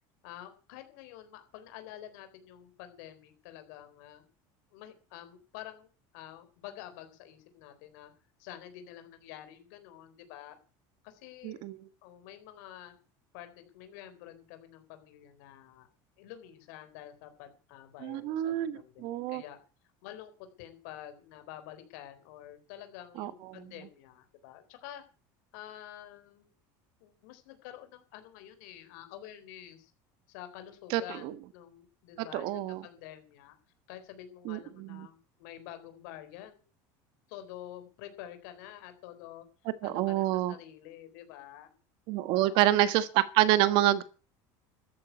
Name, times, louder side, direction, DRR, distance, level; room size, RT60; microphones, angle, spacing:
voice 1, 0.2-4.2 4.7-5.9 6.1-8.1 8.4-10.6 11.0-11.6 12.0-12.9 13.3-15.9 16.2-19.6 20.0-25.0 25.5-26.5 27.0-29.9 30.3-33.6 33.9-36.6 37.3-39.4 39.8-41.7 42.3-42.8, left 12 dB, 75° left, 4.1 m, -48 dB
voice 2, 11.4-11.8 18.0-19.4 23.2-23.3 30.9-31.3 32.3-32.8 34.4-35.1 39.8-40.5 42.1-44.0, right 14 dB, 55° right, 1.3 m, -27 dB
13.5 x 9.4 x 9.4 m
cardioid pair, 170°, 10 cm